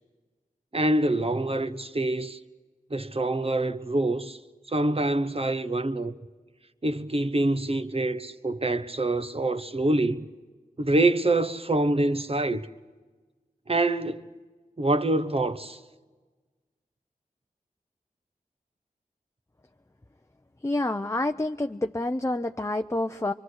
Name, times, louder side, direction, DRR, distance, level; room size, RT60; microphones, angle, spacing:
voice 1, 0.7-2.4 2.9-4.4 4.7-6.1 6.8-10.3 10.8-12.7 13.7-14.3 14.8-15.8, right 2 dB, 40° right, 1.1 m, -25 dB
voice 2, 20.6-23.3, left 2 dB, 20° left, 0.6 m, -28 dB
24.5 x 24.5 x 6.4 m
wide cardioid pair, 45°, 15 cm